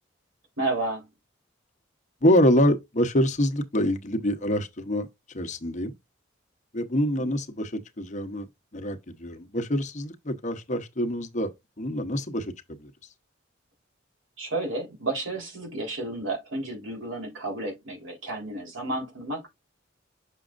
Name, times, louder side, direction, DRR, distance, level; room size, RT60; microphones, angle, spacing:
voice 1, 0.6-1.1 6.9-7.3 14.4-19.5, right 2 dB, 80° right, 3.7 m, -32 dB
voice 2, 2.2-5.1 5.3-5.9 6.7-8.5 8.7-11.5 11.8-12.5 12.8-12.9, equal, 40° left, 1.0 m, -25 dB
7.3 x 6.2 x 2.5 m
head